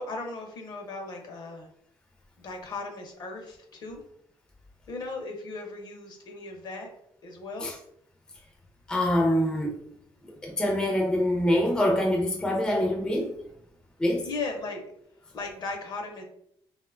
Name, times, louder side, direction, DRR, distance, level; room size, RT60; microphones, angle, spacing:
voice 1, 0.0-1.7 2.4-4.0 4.9-6.9 7.2-7.7 14.2-14.8 15.3-16.2, left 3 dB, 50° left, 3 dB, 0.6 m, -37 dB
voice 2, 8.9-9.8 10.3-13.4 14.0-14.3, left 1 dB, 10° left, 0 dB, 0.4 m, -25 dB
2.7 x 2.1 x 2.4 m, 0.71 s
cardioid pair, 125°, 9 cm